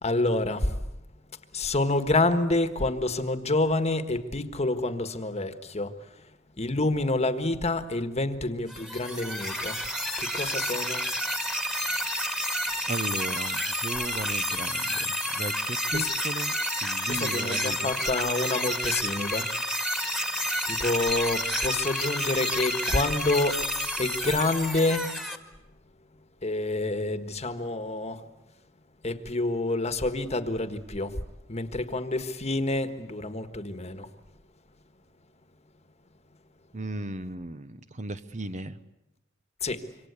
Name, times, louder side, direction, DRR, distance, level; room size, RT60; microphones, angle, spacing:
voice 1, 0.0-0.8 1.5-6.3 6.6-9.8 10.2-11.1 15.9-16.1 17.1-19.5 20.7-23.6 24.0-25.1 26.4-28.3 29.0-31.2 31.5-34.1 39.6-39.8, left 2 dB, 35° left, 1.5 m, -28 dB
sound 1, 8.7-25.4, equal, ahead, 2.0 m, -30 dB
voice 2, 12.9-16.5 16.8-18.0 36.7-38.8, right 2 dB, 35° right, 0.9 m, -36 dB
26.5 x 24.5 x 8.2 m
head